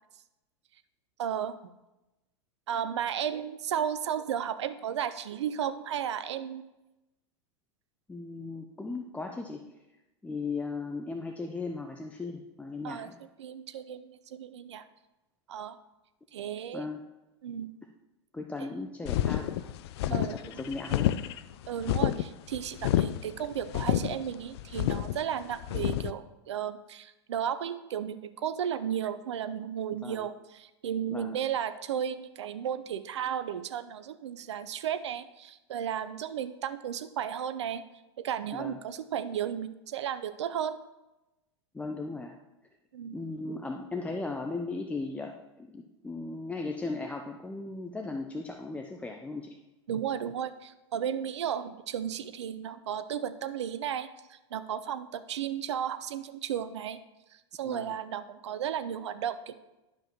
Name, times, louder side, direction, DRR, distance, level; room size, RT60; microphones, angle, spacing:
voice 1, 1.2-1.5 2.7-6.6 12.8-14.8 15.5-15.8 16.3-16.8 17.4-17.7 20.1-20.7 21.7-37.8 38.2-40.8 42.9-43.2 49.9-57.0 57.3-59.6, right 9 dB, 75° right, 11 dB, 0.6 m, -34 dB
voice 2, 8.1-9.8 10.2-13.2 16.7-17.0 18.3-19.6 20.1-21.1 30.0-30.3 31.1-31.4 38.5-38.8 41.7-42.4 43.1-49.6 57.6-57.9, left 3 dB, 10° left, 2 dB, 0.6 m, -37 dB
sound 1, 19.1-26.1, left 12 dB, 60° left, 0.4 m, -29 dB
11.5 x 5.3 x 3.0 m, 0.98 s
hypercardioid pair, 95°, 15 cm